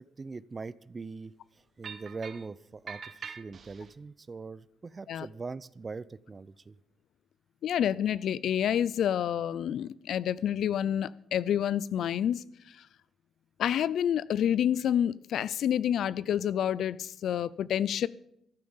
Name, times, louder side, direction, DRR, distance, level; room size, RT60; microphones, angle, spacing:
voice 1, 0.0-6.8, right 4 dB, 30° right, 19 dB, 0.5 m, -42 dB
sound 1, 1.8-2.5 2.9-3.9, right 6 dB, 50° right, 1.1 m, -43 dB
voice 2, 7.6-12.4 13.6-18.1, left 10 dB, 70° left, 19 dB, 0.4 m, -28 dB
14.0 x 11.5 x 5.6 m, 0.76 s
cardioid pair, 90°, 0 cm